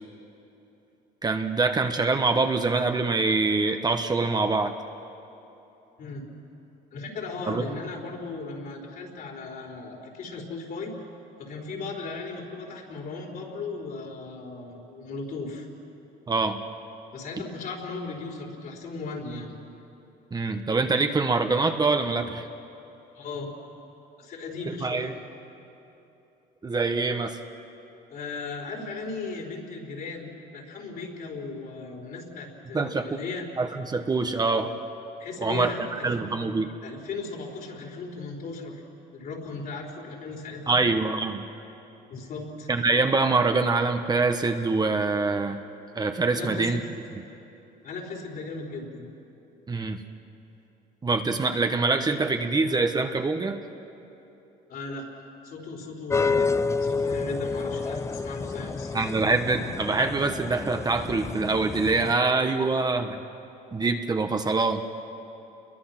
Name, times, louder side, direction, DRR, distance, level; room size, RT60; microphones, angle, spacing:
voice 1, 1.2-4.7 7.5-7.6 16.3-16.6 20.3-22.4 24.7-25.1 26.6-27.4 32.7-33.1 33.6-34.7 35.4-36.7 40.7-41.4 42.7-45.6 45.9-46.8 49.7-50.0 51.0-53.6 58.9-63.2 63.7-64.8, right 3 dB, 25° right, 6 dB, 1.1 m, -24 dB
voice 2, 6.0-6.3 6.9-10.9 11.4-15.7 17.1-19.6 23.1-23.5 24.2-25.1 28.1-33.5 35.2-36.3 36.8-38.8 39.1-40.8 42.1-42.7 46.3-46.9 47.8-49.1 54.7-55.1 55.4-58.9, left 3 dB, 60° left, -1 dB, 4.8 m, -37 dB
sound 1, 56.1-62.1, left 4 dB, 15° left, 0.4 m, -29 dB
29.0 x 22.5 x 6.0 m, 3.0 s
cardioid pair, 110°, 17 cm